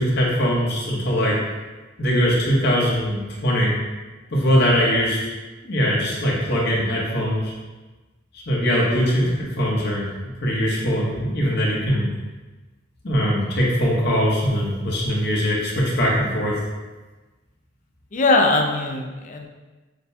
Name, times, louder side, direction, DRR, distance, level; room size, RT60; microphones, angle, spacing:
voice 1, 0.0-1.4 2.0-3.7 4.3-5.2 5.6-7.5 8.5-10.1 10.4-12.1 13.0-16.6, equal, 60° left, -4 dB, 1.1 m, -21 dB
voice 2, 8.9-9.4 18.1-19.5, left 2 dB, 40° left, 3 dB, 0.4 m, -21 dB
6.4 x 2.2 x 2.7 m, 1.2 s
head